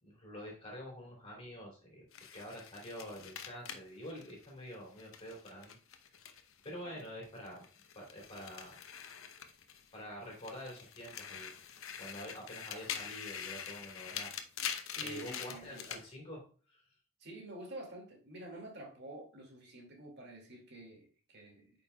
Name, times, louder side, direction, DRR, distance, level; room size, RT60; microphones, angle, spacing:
voice 1, 0.0-2.0 2.3-5.8 6.6-7.6 7.9-8.7 9.9-11.5 12.0-14.3 15.0-16.4 16.7-16.8, equal, 30° left, 3.1 m, -47 dB
sound 1, 2.1-6.7 7.0-10.0 10.3-16.0, left 8 dB, 80° left, 0.8 m, -45 dB
voice 2, 14.9-15.9 17.2-21.8, right 1 dB, 55° right, 2.1 m, -49 dB
8.4 x 5.3 x 2.3 m
head